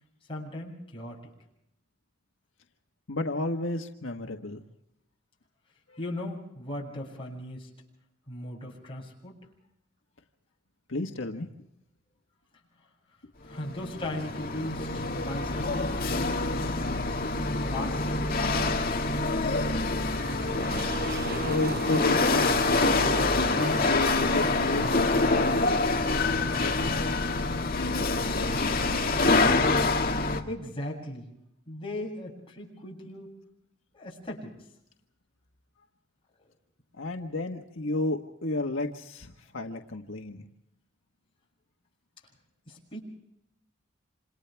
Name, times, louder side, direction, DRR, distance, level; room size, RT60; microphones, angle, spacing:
voice 1, 0.3-1.2 6.0-7.7 8.3-9.5 13.4-17.2 17.5-18.6 30.4-31.3 31.7-33.4 33.9-34.5 42.7-43.0, left 1 dB, 30° left, -2 dB, 7.6 m, -38 dB
voice 2, 3.1-4.6 5.9-6.0 10.9-11.5 21.4-22.9 23.3-27.2 27.5-28.1 28.3-28.8 37.0-40.4, left 2 dB, 90° left, 3 dB, 1.5 m, -33 dB
Chatter / Hiss / Rattle, 13.5-30.4, left 3 dB, 50° left, 2.2 m, -26 dB
sound 1, 19.9-26.3, right 3 dB, 50° right, 1.0 m, -38 dB
28.0 x 27.5 x 3.5 m, 0.81 s
head